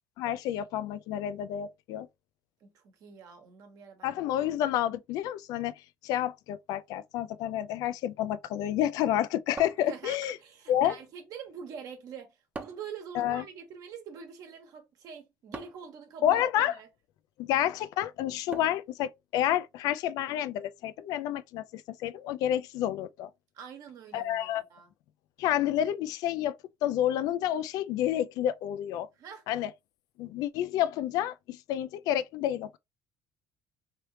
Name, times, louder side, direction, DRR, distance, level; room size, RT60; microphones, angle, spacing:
voice 1, 0.2-2.1 4.0-5.7 6.0-10.4 10.7-11.0 13.1-13.4 16.2-16.7 17.4-23.3 24.1-24.6 25.4-29.1 29.5-29.7 30.2-32.8, left 11 dB, 75° left, 0.3 m, -29 dB
voice 2, 2.6-4.3 9.9-16.9 23.5-24.9 29.1-29.4, right 7 dB, 65° right, 1.1 m, -45 dB
sound 1, 9.6-10.4 12.5-13.0 15.5-15.9 18.5-18.9, right 3 dB, 25° right, 0.7 m, -43 dB
3.2 x 2.7 x 3.0 m
supercardioid pair, 90°, 6 cm